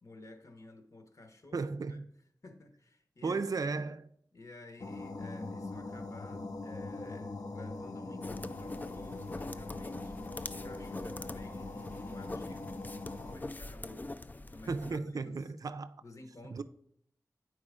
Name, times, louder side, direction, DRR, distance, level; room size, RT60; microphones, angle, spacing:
voice 1, 0.0-2.0 2.4-3.7 4.3-10.1 10.5-12.9 13.2-14.2 14.5-15.5 16.0-16.6, left 2 dB, 55° left, 1.1 m, -52 dB
voice 2, 1.5-2.0 3.2-4.0 14.7-16.0 16.5-16.6, right 4 dB, 60° right, 0.4 m, -35 dB
sound 1, 4.8-13.4, left 2 dB, 70° left, 0.9 m, -42 dB
sound 2, 8.2-15.0, left 2 dB, 25° left, 0.3 m, -44 dB
8.5 x 4.7 x 4.9 m
wide cardioid pair, 100°, 7 cm